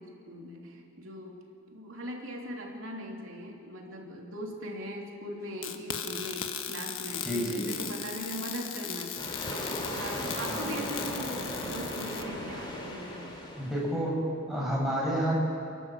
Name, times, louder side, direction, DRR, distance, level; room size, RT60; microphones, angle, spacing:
voice 1, 0.0-1.4 1.7-9.4 9.9-13.3, equal, 85° right, 0 dB, 3.1 m, -40 dB
sound 1, 5.6-12.2, left 9 dB, 80° left, 1.3 m, -38 dB
voice 2, 7.2-7.9 10.5-10.7 13.6-14.2 14.5-15.3, equal, ahead, -5 dB, 6.2 m, -30 dB
sound 2, 9.2-14.0, equal, 25° left, 3.3 m, -37 dB
29.5 x 11.5 x 7.7 m, 2.4 s
head